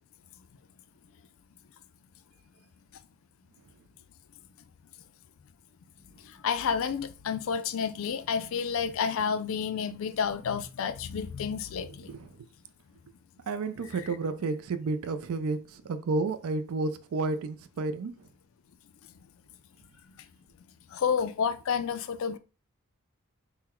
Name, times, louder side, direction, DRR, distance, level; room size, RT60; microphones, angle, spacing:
voice 1, 6.3-12.1 20.9-22.4, left 6 dB, 65° left, 0.4 m, -30 dB
voice 2, 12.1-12.5 13.5-18.3, right 3 dB, 75° right, 0.4 m, -31 dB
3.8 x 2.1 x 4.3 m
head